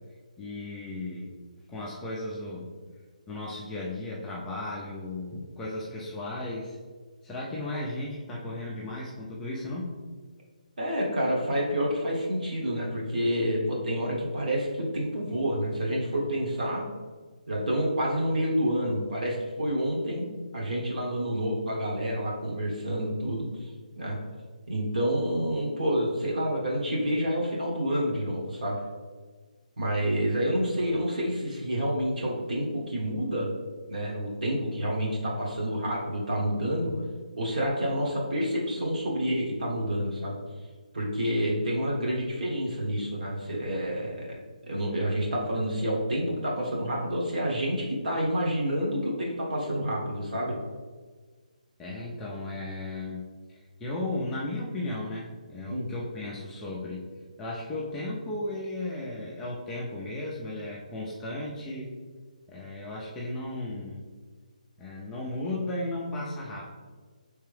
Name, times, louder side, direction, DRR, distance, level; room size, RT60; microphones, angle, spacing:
voice 1, 0.4-1.4 1.7-2.8 3.3-6.8 7.2-9.9 51.8-57.1 57.4-61.9 62.5-64.0 64.8-66.7, left 2 dB, 5° left, -5 dB, 0.3 m, -35 dB
voice 2, 10.8-16.8 17.5-20.3 20.5-23.7 24.0-24.2 24.7-28.8 29.8-33.5 33.9-36.9 37.3-40.4 40.9-50.6 55.7-55.9, equal, 65° right, -3 dB, 1.3 m, -28 dB
4.5 x 3.3 x 3.3 m, 1.4 s
hypercardioid pair, 170°, 4 cm